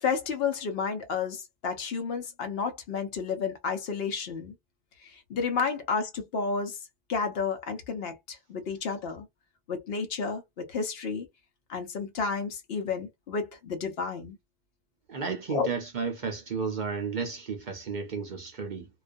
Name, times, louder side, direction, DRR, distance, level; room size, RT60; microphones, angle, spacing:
voice 1, 0.0-4.5 5.0-6.8 7.1-9.3 9.7-11.3 11.7-14.4 15.5-15.7, left 5 dB, 65° left, 0.9 m, -31 dB
voice 2, 15.1-18.9, right 5 dB, 50° right, 0.6 m, -33 dB
2.3 x 2.3 x 2.5 m
omnidirectional pair, 1.1 m